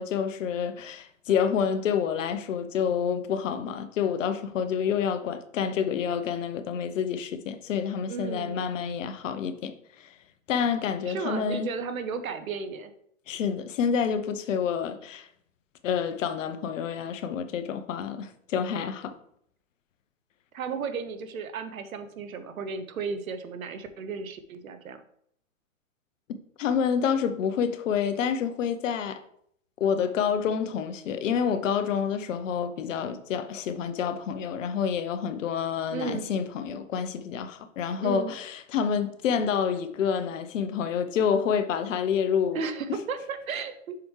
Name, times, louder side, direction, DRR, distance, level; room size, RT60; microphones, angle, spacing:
voice 1, 0.0-10.1 10.5-11.7 13.3-15.3 15.8-19.1 26.3-29.2 29.8-42.6, left 7 dB, 65° left, 0.9 m, -28 dB
voice 2, 8.1-8.6 11.1-12.9 20.5-25.0 35.9-36.3 38.0-38.3 42.5-44.0, right 5 dB, 85° right, 1.0 m, -34 dB
6.9 x 4.9 x 3.2 m
hypercardioid pair, 125°, 40 cm